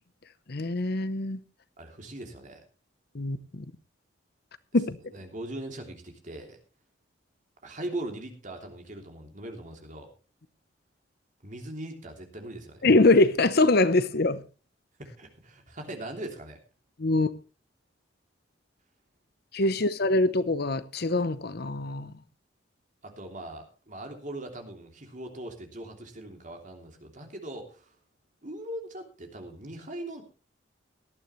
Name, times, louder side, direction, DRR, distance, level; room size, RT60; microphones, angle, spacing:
voice 1, 0.5-1.4 3.1-3.6 4.7-5.0 12.8-14.4 17.0-17.3 19.5-22.1, left 2 dB, 55° left, 0.8 m, -23 dB
voice 2, 1.8-2.6 5.1-6.6 7.6-10.1 11.4-12.9 15.0-16.6 19.7-19.8 23.0-28.0 28.4-30.2, right 1 dB, 40° right, 3.1 m, -40 dB
18.5 x 12.0 x 3.2 m
head